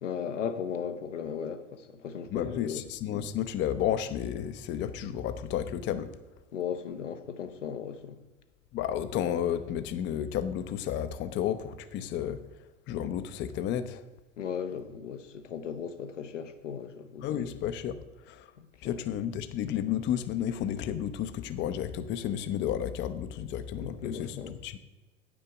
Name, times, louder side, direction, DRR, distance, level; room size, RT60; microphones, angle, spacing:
voice 1, 0.0-2.8 6.5-8.1 14.4-17.5 18.6-19.0 23.8-24.5, left 7 dB, 80° left, 0.8 m, -36 dB
voice 2, 2.3-6.1 8.7-12.4 12.9-14.0 17.2-18.0 18.3-18.5 18.8-24.8, left 10 dB, 30° left, 0.5 m, -32 dB
9.2 x 6.0 x 4.8 m
figure-of-eight pair, 80°, 36 cm